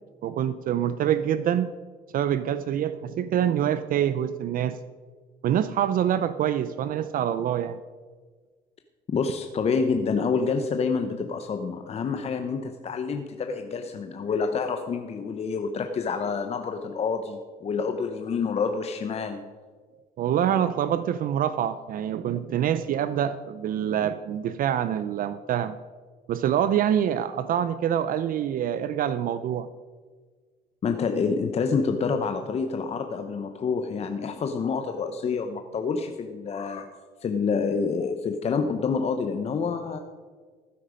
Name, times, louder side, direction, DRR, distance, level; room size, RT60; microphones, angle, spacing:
voice 1, 0.2-1.7 2.1-4.8 5.4-7.8 20.2-25.8 26.3-29.7, right 10 dB, 55° right, 13 dB, 0.5 m, -25 dB
voice 2, 9.1-19.5 30.8-36.9 37.2-40.0, left 5 dB, 40° left, 6 dB, 0.8 m, -27 dB
14.5 x 8.7 x 5.1 m, 1.5 s
cardioid pair, 110°, 17 cm